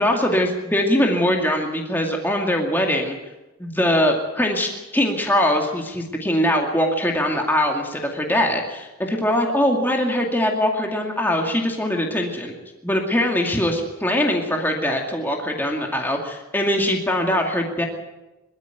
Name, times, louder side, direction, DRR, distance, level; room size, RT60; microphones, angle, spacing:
voice 1, 0.0-3.2 3.6-12.5 12.8-17.8, left 1 dB, 10° left, 1 dB, 2.3 m, -22 dB
22.5 x 13.0 x 9.2 m, 1.0 s
head